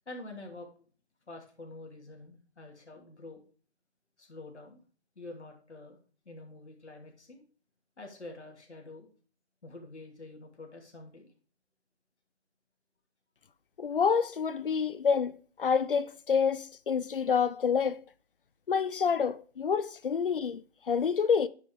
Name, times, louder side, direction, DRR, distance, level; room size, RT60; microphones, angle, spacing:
voice 1, 0.1-0.7 1.3-3.4 4.2-4.8 5.2-6.0 6.2-7.4 8.0-9.1 9.6-11.3, left 2 dB, 85° left, 2.8 m, -47 dB
voice 2, 13.8-18.0 18.7-21.5, left 6 dB, 55° left, 0.7 m, -28 dB
9.2 x 5.8 x 3.5 m
figure-of-eight pair, 165°, 33 cm